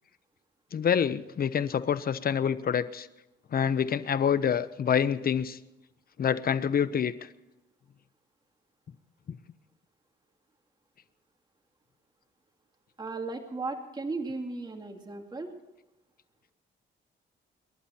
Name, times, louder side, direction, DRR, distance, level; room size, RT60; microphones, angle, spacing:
voice 1, 0.7-3.1 3.5-5.6 6.2-7.1, left 8 dB, 50° left, 14 dB, 1.0 m, -26 dB
voice 2, 13.0-15.5, right 3 dB, 20° right, 3 dB, 2.3 m, -36 dB
28.0 x 11.5 x 4.4 m, 0.98 s
cardioid pair, 90°, 20 cm